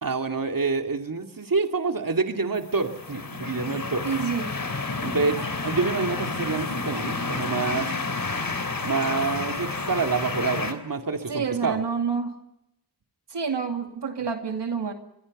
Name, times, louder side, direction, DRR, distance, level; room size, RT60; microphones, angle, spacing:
voice 1, 0.0-4.1 5.0-7.9 8.8-11.8, right 4 dB, 55° right, 5 dB, 2.5 m, -27 dB
sound 1, 2.6-10.7, left 3 dB, 55° left, 3.5 m, -30 dB
voice 2, 4.0-4.5 11.3-12.3 13.3-14.9, right 6 dB, 85° right, 4 dB, 2.5 m, -28 dB
26.0 x 22.5 x 5.4 m, 0.83 s
cardioid pair, 50°, 41 cm